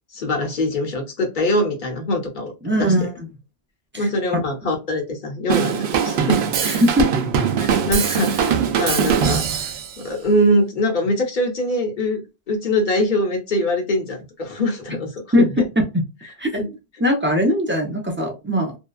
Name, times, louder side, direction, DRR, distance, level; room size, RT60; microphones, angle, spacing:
voice 1, 0.1-2.9 4.0-6.8 7.6-9.7 10.0-15.6, left 1 dB, 50° left, 2 dB, 1.0 m, -23 dB
voice 2, 2.6-3.3 3.9-4.4 6.6-7.1 15.3-15.5 15.8-15.9 16.4-16.6 17.0-18.8, equal, 15° right, 2 dB, 0.5 m, -20 dB
Drum kit / Drum, 5.5-9.9, right 7 dB, 70° right, 0.8 m, -21 dB
2.7 x 2.2 x 2.3 m, 0.26 s
omnidirectional pair, 1.1 m